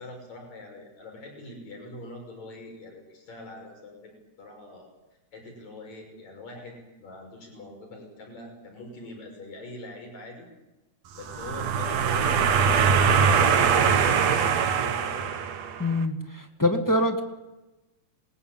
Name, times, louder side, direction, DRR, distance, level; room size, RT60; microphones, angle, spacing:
voice 1, 0.0-4.9 5.3-10.5 11.1-15.3, left 2 dB, 65° left, 2 dB, 7.3 m, -43 dB
sound 1, 11.2-15.9, right 6 dB, 70° right, 2.4 m, -22 dB
voice 2, 15.8-17.2, left 1 dB, 10° left, 5 dB, 1.5 m, -24 dB
27.0 x 21.0 x 8.9 m, 1.0 s
omnidirectional pair, 3.3 m